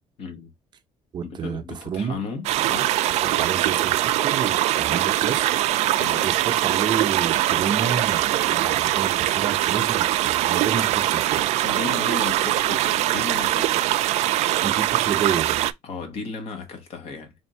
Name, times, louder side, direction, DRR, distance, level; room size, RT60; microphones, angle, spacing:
voice 1, 0.2-0.5 1.2-3.0 3.3-3.5 6.0-6.3 11.4-13.9 15.8-17.3, left 4 dB, 60° left, 1.4 m, -35 dB
voice 2, 1.1-2.2 3.2-5.4 5.8-11.4 14.6-15.7, right 7 dB, 40° right, 0.7 m, -30 dB
sound 1, 2.4-15.7, right 14 dB, 70° right, 0.4 m, -22 dB
3.5 x 2.6 x 4.3 m
cardioid pair, 140°, 12 cm